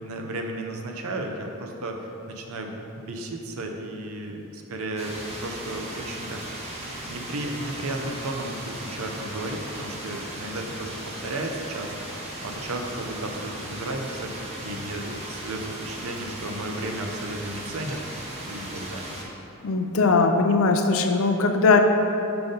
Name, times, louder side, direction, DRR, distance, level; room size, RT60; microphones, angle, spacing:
voice 1, 0.0-5.1 5.4-6.7 7.1-18.0 18.4-19.1, right 1 dB, 80° right, 3 dB, 0.6 m, -34 dB
sound 1, 5.0-19.2, right 1 dB, 30° right, 0.8 m, -37 dB
voice 2, 19.6-21.8, left 4 dB, 70° left, 5 dB, 0.5 m, -20 dB
5.8 x 5.1 x 3.9 m, 2.9 s
head